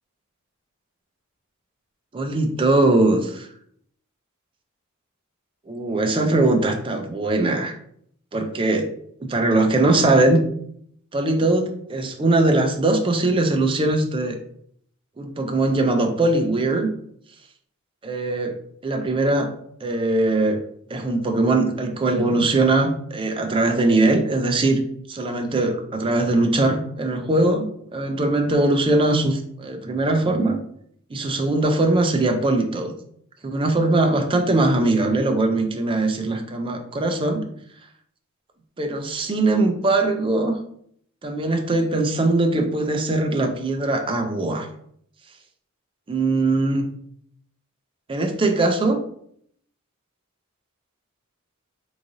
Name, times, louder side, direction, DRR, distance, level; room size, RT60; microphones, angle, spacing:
voice 1, 2.1-3.5 5.7-7.7 8.3-8.9 9.2-10.4 11.1-14.4 15.2-16.9 18.0-18.6 18.8-19.5 19.8-20.6 20.9-24.8 25.1-30.6 31.1-32.9 33.4-37.4 38.8-40.6 41.2-44.7 46.1-46.9 48.1-49.0, right 2 dB, 25° right, 5 dB, 0.4 m, -21 dB
3.7 x 3.1 x 2.6 m, 0.67 s
head